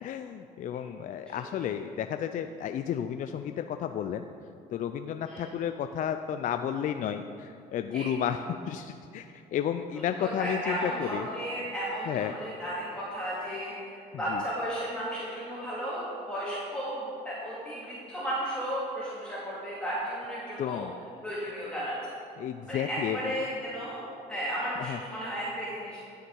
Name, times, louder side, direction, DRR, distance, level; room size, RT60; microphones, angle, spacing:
voice 1, 0.0-4.2 4.7-11.3 12.1-12.3 14.3-14.4 20.6-20.9 22.4-23.2 24.9-25.0, left 9 dB, 50° left, 8 dB, 0.4 m, -32 dB
voice 2, 10.2-20.9 21.2-22.0 22.7-24.0 24.3-26.0, equal, 5° left, -9 dB, 2.3 m, -34 dB
11.5 x 6.5 x 4.6 m, 2.5 s
cardioid pair, 110°, 17 cm